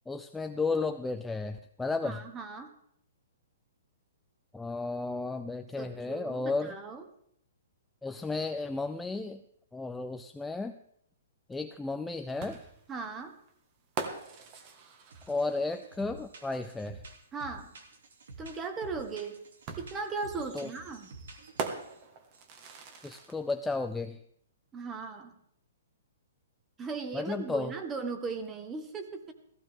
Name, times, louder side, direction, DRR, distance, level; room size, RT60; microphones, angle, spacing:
voice 1, 0.1-2.2 4.5-6.7 8.0-9.4 9.7-10.8 11.5-12.7 15.3-17.0 20.5-20.7 23.0-24.2 27.1-27.7, left 3 dB, 5° left, 7 dB, 0.4 m, -33 dB
voice 2, 2.0-2.7 5.8-7.0 12.9-13.3 17.3-17.7 18.4-19.4 19.8-21.2 24.7-25.4 26.8-29.3, right 4 dB, 15° right, 7 dB, 1.5 m, -38 dB
sound 1, 12.4-16.1 17.5-17.6 19.7-23.6, right 5 dB, 35° right, 1.6 m, -42 dB
sound 2, 15.1-15.5 15.7-22.0 22.3-22.9, right 2 dB, 80° right, 2.7 m, -49 dB
15.5 x 15.0 x 3.7 m, 0.70 s
hypercardioid pair, 150°, 0 cm